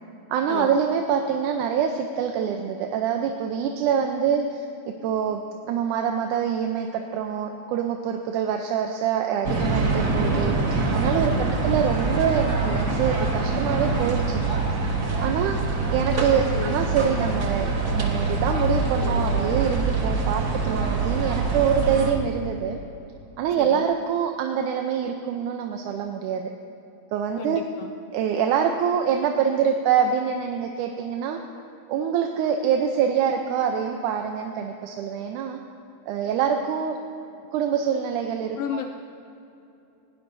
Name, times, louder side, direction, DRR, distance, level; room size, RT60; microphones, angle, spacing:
voice 1, 0.3-5.4 5.7-10.6 10.9-14.6 15.2-15.6 15.9-22.8 23.4-26.5 27.1-27.6 28.1-31.4 31.9-35.6 36.1-37.0 37.5-38.8, right 7 dB, 85° right, 3 dB, 2.2 m, -25 dB
sound 1, 9.4-22.1, right 3 dB, 45° right, 1.5 m, -24 dB
voice 2, 11.2-11.6 16.5-16.9 23.6-23.9 27.4-27.9 38.5-38.9, left 9 dB, 90° left, 5 dB, 1.4 m, -33 dB
20.5 x 17.0 x 2.7 m, 2.8 s
omnidirectional pair, 3.5 m